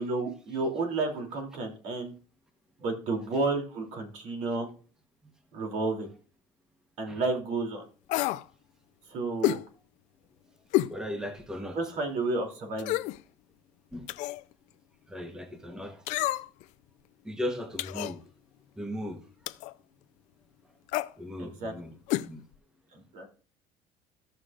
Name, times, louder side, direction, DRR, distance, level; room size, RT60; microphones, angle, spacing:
voice 1, 0.0-2.1 2.8-4.7 5.5-6.1 7.0-7.8 9.1-9.6 11.7-13.0 21.4-21.7 22.9-23.3, right 3 dB, 65° right, 2.9 m, -31 dB
sound 1, 8.1-8.5 9.4-9.6 10.7-11.0 11.4-11.5 12.8-13.2 14.1-14.4 16.1-16.6 17.8-18.2 19.5-19.7 20.9-21.1 22.1-22.3 22.5-22.6, left 16 dB, 70° left, 0.5 m, -29 dB
voice 2, 10.9-11.8 13.9-14.1 15.1-16.3 17.2-18.2 18.8-19.2 21.2-22.4, left 1 dB, 5° right, 1.0 m, -37 dB
15.0 x 6.4 x 2.5 m
cardioid pair, 145°, 13 cm